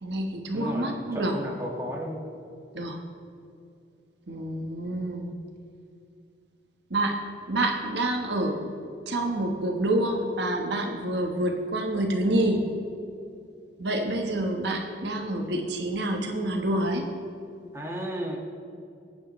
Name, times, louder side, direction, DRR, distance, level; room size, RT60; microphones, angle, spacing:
voice 1, 0.0-1.3 2.7-3.0 4.3-5.3 6.9-7.2 7.5-8.6 9.1-12.6 13.8-17.1, right 1 dB, 65° right, 2 dB, 1.3 m, -27 dB
voice 2, 0.5-2.2 17.7-18.4, equal, 15° right, -2 dB, 1.7 m, -33 dB
23.5 x 8.8 x 3.2 m, 2.5 s
head